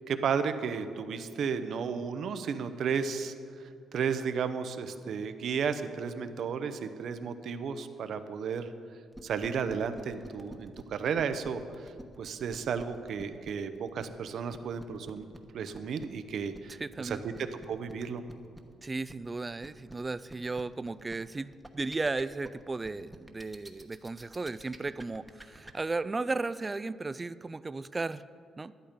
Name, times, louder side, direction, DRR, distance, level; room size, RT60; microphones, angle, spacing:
voice 1, 0.1-3.3 3.9-8.7 9.2-11.6 12.2-15.3 15.5-17.3 17.7-18.2, right 6 dB, 65° right, 10 dB, 0.8 m, -33 dB
sound 1, 9.1-25.7, right 1 dB, 5° right, 1.1 m, -48 dB
voice 2, 16.7-17.2 18.8-28.2 28.6-28.7, right 3 dB, 25° right, 16 dB, 0.4 m, -35 dB
12.0 x 11.5 x 5.2 m, 2.3 s
cardioid pair, 90°, 0 cm